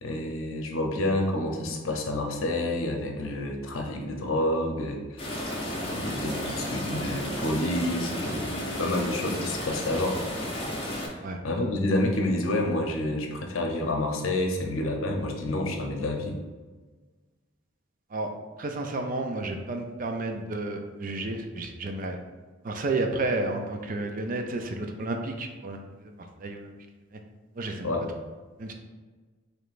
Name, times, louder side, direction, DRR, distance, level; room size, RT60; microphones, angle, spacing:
voice 1, 0.0-5.5 5.8-10.2 11.0-11.2 11.4-16.4 27.8-28.1, left 1 dB, 80° left, 2 dB, 0.7 m, -29 dB
sound 1, 5.2-11.1, left 1 dB, 25° left, 0.9 m, -33 dB
voice 2, 18.6-22.2 22.6-26.1 26.4-26.7 27.6-27.9 28.6-28.7, right 2 dB, 40° right, 4 dB, 0.4 m, -31 dB
4.9 x 3.2 x 2.5 m, 1.3 s
head